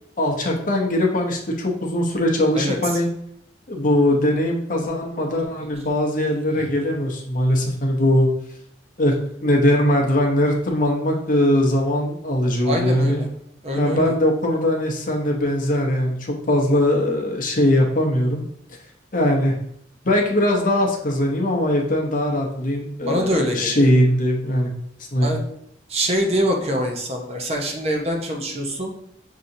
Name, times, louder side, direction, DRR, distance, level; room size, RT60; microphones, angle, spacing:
voice 1, 0.2-3.1 3.7-8.3 9.0-9.1 9.4-13.2 13.8-18.4 19.1-19.6 20.0-24.7 25.1-25.3, left 1 dB, 50° left, 0 dB, 0.8 m, -20 dB
voice 2, 12.7-13.3 13.6-14.1 23.0-23.9 25.2-25.4 25.9-28.9, equal, 35° right, 2 dB, 0.7 m, -24 dB
6.3 x 2.8 x 2.6 m, 0.72 s
head